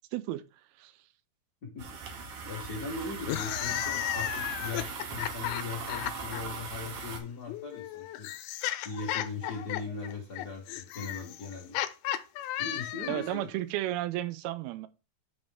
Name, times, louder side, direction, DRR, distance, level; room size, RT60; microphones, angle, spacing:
voice 1, 0.1-0.4 0.8-0.9 13.1-14.9, right 15 dB, 85° right, 2.5 m, -33 dB
voice 2, 1.6-8.3 8.8-11.8 12.5-13.5, left 4 dB, 55° left, 1.0 m, -39 dB
sound 1, 1.8-7.2, right 4 dB, 70° right, 1.4 m, -39 dB
sound 2, 3.2-6.4 7.5-13.4, left 14 dB, 90° left, 2.5 m, -34 dB
9.6 x 4.1 x 3.5 m
omnidirectional pair, 4.3 m